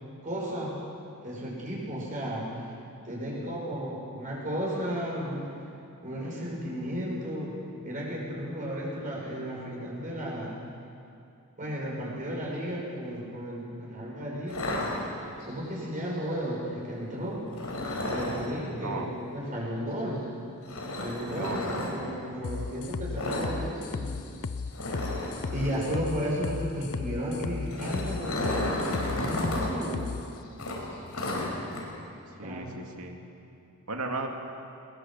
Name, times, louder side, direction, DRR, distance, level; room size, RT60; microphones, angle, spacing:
voice 1, 0.2-0.8 1.2-2.7 3.0-5.5 6.0-7.5 7.8-10.6 11.6-14.6 15.5-17.5 18.1-19.1 19.3-20.2 21.0-24.1 25.5-30.0 32.4-32.7, equal, 35° right, -4 dB, 5.6 m, -34 dB
sound 1, 14.5-15.5 17.5-18.5 20.7-21.9 23.1-23.5 23.8-24.0 24.3-24.4 24.7-25.9 27.4-29.7 30.0-30.1 30.6-31.8, left 1 dB, 85° left, 5.0 m, -32 dB
voice 2, 21.4-21.7 32.4-33.2 33.9-34.3, right 3 dB, 75° right, 3 dB, 2.5 m, -35 dB
sound 2, 22.4-30.2, left 4 dB, 70° left, 0.6 m, -35 dB
21.5 x 20.5 x 7.6 m, 2.7 s
head